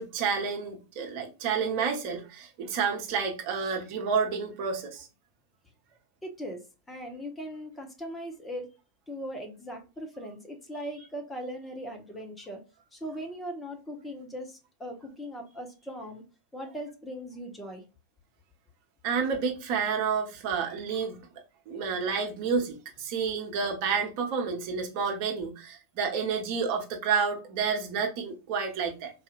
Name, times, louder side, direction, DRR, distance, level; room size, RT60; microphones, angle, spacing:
voice 1, 0.0-5.1 19.0-21.2 21.7-29.1, right 6 dB, 45° right, 1.0 m, -30 dB
voice 2, 6.2-6.6 6.9-8.7 9.1-12.6 12.9-16.2 16.5-17.8, equal, 10° left, 1.0 m, -39 dB
4.1 x 2.7 x 2.5 m
figure-of-eight pair, 90°, 0 cm